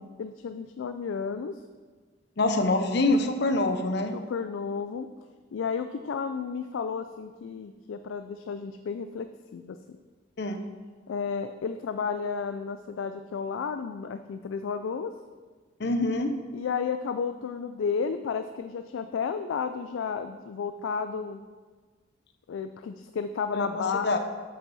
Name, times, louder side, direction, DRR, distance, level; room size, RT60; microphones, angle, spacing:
voice 1, 0.2-1.6 4.1-5.1 5.5-10.0 11.1-15.1 16.5-21.4 22.5-24.1, left 6 dB, 75° left, 9 dB, 0.3 m, -32 dB
voice 2, 2.4-4.2 10.4-10.6 15.8-16.3 23.5-24.2, left 2 dB, 55° left, 7 dB, 0.7 m, -25 dB
8.2 x 7.1 x 4.1 m, 1.5 s
head